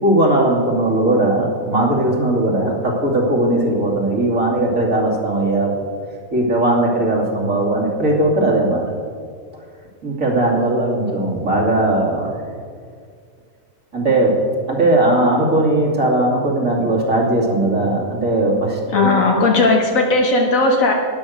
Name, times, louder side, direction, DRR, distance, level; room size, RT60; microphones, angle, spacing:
voice 1, 0.0-5.8 6.3-8.8 10.0-12.3 13.9-14.3 14.7-19.1, right 1 dB, 75° right, -2 dB, 3.0 m, -18 dB
voice 2, 18.9-20.9, left 3 dB, 75° left, 1 dB, 1.5 m, -16 dB
12.5 x 10.0 x 6.4 m, 2.1 s
omnidirectional pair, 1.4 m